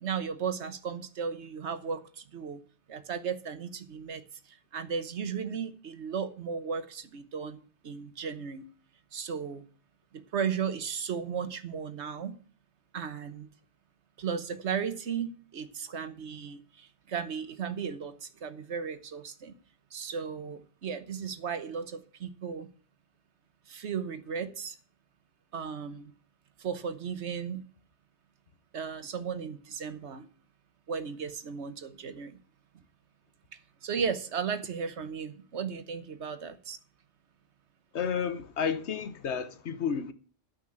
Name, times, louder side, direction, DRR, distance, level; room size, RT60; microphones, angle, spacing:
voice 1, 0.0-2.6 2.9-4.2 4.7-8.7 9.1-9.7 10.1-12.4 12.9-13.5 14.2-19.6 19.9-22.7 23.7-24.8 25.5-26.1 26.6-27.6 28.7-30.3 30.9-32.4 33.8-36.8, right 6 dB, 80° right, 1.4 m, -35 dB
voice 2, 37.9-40.1, left 7 dB, 75° left, 1.3 m, -31 dB
12.5 x 5.4 x 8.7 m
omnidirectional pair, 1.2 m